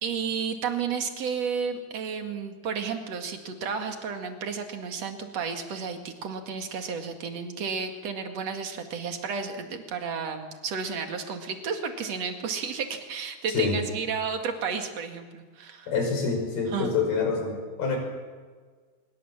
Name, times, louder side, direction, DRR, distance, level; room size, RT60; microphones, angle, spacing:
voice 1, 0.0-15.9 16.7-16.9, right 6 dB, 50° right, 5 dB, 2.5 m, -32 dB
voice 2, 15.9-18.0, left 5 dB, 60° left, 3 dB, 7.1 m, -26 dB
24.5 x 22.5 x 7.3 m, 1.5 s
omnidirectional pair, 5.1 m